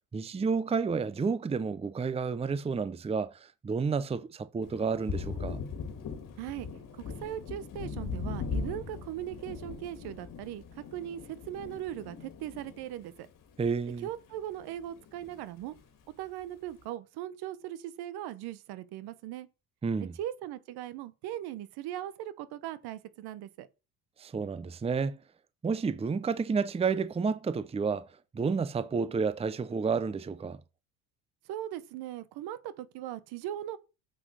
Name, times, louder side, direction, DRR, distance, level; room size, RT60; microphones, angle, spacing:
voice 1, 0.1-5.6 13.6-14.1 19.8-20.1 24.2-25.2 25.6-28.1 28.3-30.6, right 5 dB, 15° right, 0.7 m, -30 dB
Thunder, 4.6-14.4 14.7-15.8, left 5 dB, 50° left, 2.3 m, -40 dB
voice 2, 6.4-6.7 6.9-13.3 14.0-15.7 16.2-19.5 20.2-23.7 31.5-33.8, right 12 dB, 65° right, 1.1 m, -39 dB
7.7 x 6.1 x 6.2 m
supercardioid pair, 90°, 42 cm